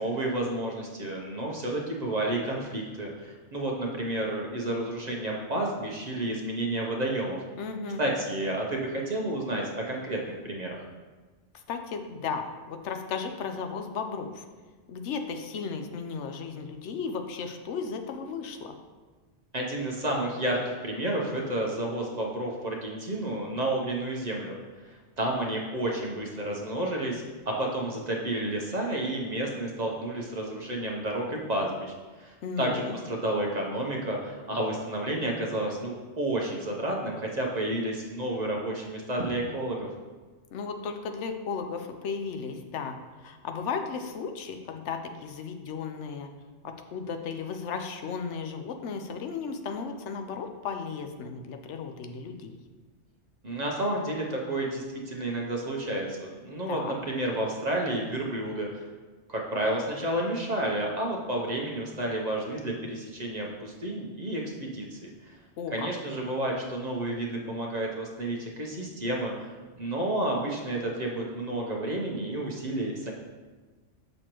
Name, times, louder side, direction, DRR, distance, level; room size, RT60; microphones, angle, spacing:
voice 1, 0.0-7.4 8.0-10.8 19.5-24.6 24.8-39.9 53.4-58.9 59.3-65.0 65.3-65.4 65.7-73.1, right 1 dB, 40° right, -1 dB, 0.9 m, -31 dB
voice 2, 7.6-8.0 11.5-14.5 14.9-18.7 32.4-33.0 40.5-46.3 46.6-52.6 56.7-56.9 65.6-65.9, left 5 dB, 75° left, 6 dB, 0.9 m, -35 dB
6.5 x 6.4 x 3.0 m, 1.3 s
omnidirectional pair, 1.2 m